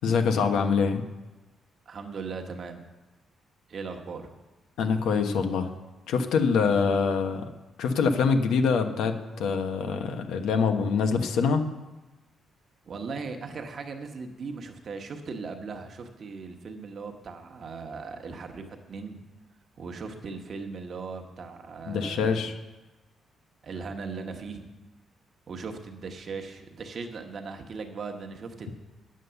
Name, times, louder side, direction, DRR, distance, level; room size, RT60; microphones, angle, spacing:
voice 1, 0.0-1.0 4.8-5.7 6.1-7.4 7.8-11.7 21.9-22.5, left 5 dB, 85° left, 6 dB, 1.0 m, -24 dB
voice 2, 1.9-2.8 3.7-4.4 12.9-19.2 19.8-22.5 23.6-24.7 25.5-28.7, right 4 dB, 40° right, 4 dB, 1.1 m, -38 dB
9.6 x 7.5 x 6.9 m, 1.1 s
cardioid pair, 160°, 0 cm